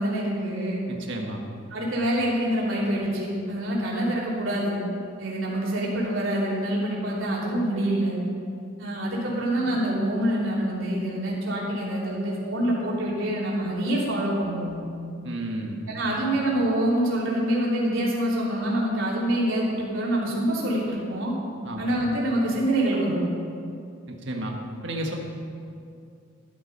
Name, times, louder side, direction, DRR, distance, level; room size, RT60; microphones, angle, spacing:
voice 1, 0.0-0.8 1.7-4.8 5.2-8.2 8.8-14.8 15.9-21.3 21.8-23.2, right 1 dB, 80° right, -5 dB, 3.2 m, -26 dB
voice 2, 0.9-1.4 15.2-15.8 21.6-21.8 24.1-24.5 24.8-25.2, right 1 dB, 65° right, 1 dB, 1.5 m, -32 dB
13.0 x 11.5 x 5.4 m, 2.4 s
head